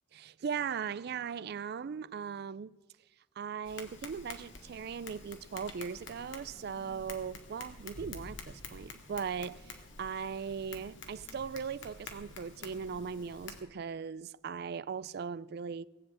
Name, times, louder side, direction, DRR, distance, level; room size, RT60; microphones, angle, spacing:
voice 1, 0.1-2.8 3.4-15.9, right 6 dB, 60° right, 0.4 m, -39 dB
Tap, 3.6-13.6, left 3 dB, 90° left, 2.0 m, -48 dB
18.0 x 7.8 x 8.6 m
head